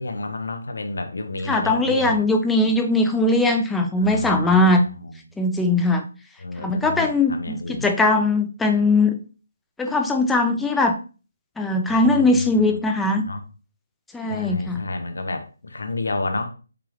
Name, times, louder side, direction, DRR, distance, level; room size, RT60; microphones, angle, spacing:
voice 1, 0.0-2.2 4.0-4.6 4.9-5.2 5.6-5.7 6.4-7.9 12.1-12.8 13.2-13.5 14.3-16.5, left 2 dB, 85° left, 7 dB, 0.7 m, -30 dB
voice 2, 1.5-4.9 5.4-6.0 6.6-9.2 9.8-11.0 11.6-13.2 14.1-14.8, left 2 dB, 5° left, 4 dB, 0.3 m, -20 dB
4.8 x 2.4 x 3.1 m, 0.35 s
hypercardioid pair, 165°, 0 cm